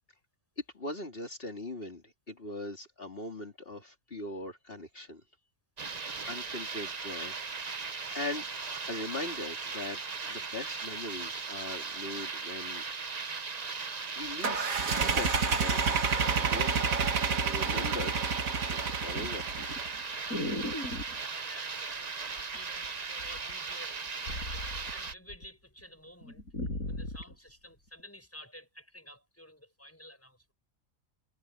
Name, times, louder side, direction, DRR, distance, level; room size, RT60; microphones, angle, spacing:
voice 1, 0.7-5.2 5.8-7.4 7.8-10.0 10.3-12.8 14.1-15.9 16.5-16.9 17.4-18.2 18.7-19.5, left 2 dB, 40° left, 3.4 m, -40 dB
sound 1, 5.8-25.1, right 4 dB, 35° right, 1.0 m, -38 dB
sound 2, 14.3-14.4 14.9-16.4 17.0-17.2 17.6-18.1 18.4-21.2 22.4-22.9 23.2-25.5 25.8-25.9 26.2-27.3 28.0-28.1, left 1 dB, 90° left, 8.2 m, -39 dB
sound 3, 14.4-20.0, right 5 dB, 80° right, 2.0 m, -29 dB
voice 2, 21.2-24.1 24.5-26.4 26.9-30.5, equal, 10° left, 7.9 m, -52 dB
omnidirectional pair, 1.4 m